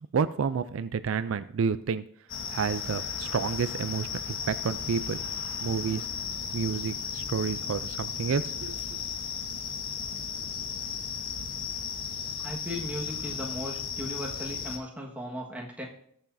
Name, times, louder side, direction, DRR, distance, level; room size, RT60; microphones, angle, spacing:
voice 1, 0.1-2.0 2.5-5.2 5.6-6.1 6.5-8.7, right 6 dB, 70° right, 13 dB, 0.4 m, -30 dB
sound 1, 2.3-14.8, left 6 dB, 65° left, 1.2 m, -35 dB
voice 2, 12.4-15.9, equal, 5° right, -2 dB, 1.5 m, -37 dB
20.0 x 7.0 x 2.7 m, 0.67 s
head